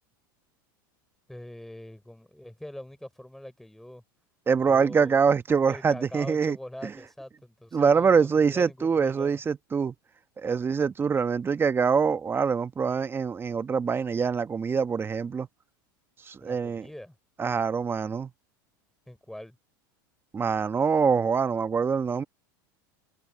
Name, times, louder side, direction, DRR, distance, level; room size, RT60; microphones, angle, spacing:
voice 1, 1.3-4.0 4.6-5.2 5.7-9.4 16.4-17.2 19.1-19.6, left 1 dB, 5° left, 3.6 m, -43 dB
voice 2, 4.5-6.6 6.8-6.9 7.7-9.9 10.4-15.5 16.3-16.9 17.4-18.3 20.3-22.2, right 6 dB, 20° right, 1.1 m, -24 dB
supercardioid pair, 110°, 11 cm